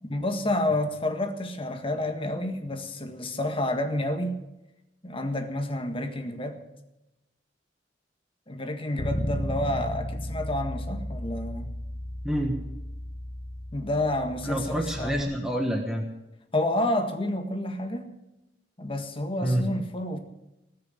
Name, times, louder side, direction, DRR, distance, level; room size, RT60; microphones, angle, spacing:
voice 1, 0.0-4.4 5.0-6.6 8.5-11.7 13.7-15.4 16.5-18.1 18.8-20.2, left 1 dB, 30° left, 5 dB, 1.7 m, -29 dB
Bass guitar, 9.0-15.2, left 1 dB, 45° left, 1.3 m, -34 dB
voice 2, 12.2-12.5 14.4-16.0 19.4-19.7, right 1 dB, 5° right, 1 dB, 1.3 m, -27 dB
19.5 x 6.6 x 9.5 m, 0.94 s
head